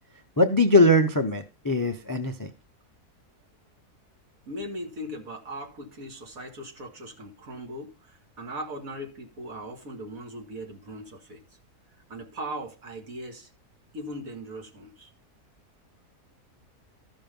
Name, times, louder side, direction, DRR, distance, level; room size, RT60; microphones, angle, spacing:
voice 1, 0.4-2.5, left 1 dB, 30° left, 0.4 m, -21 dB
voice 2, 4.5-11.4 12.1-13.5 13.9-15.1, right 1 dB, 60° right, 2.5 m, -39 dB
13.5 x 5.7 x 5.3 m
omnidirectional pair, 1.7 m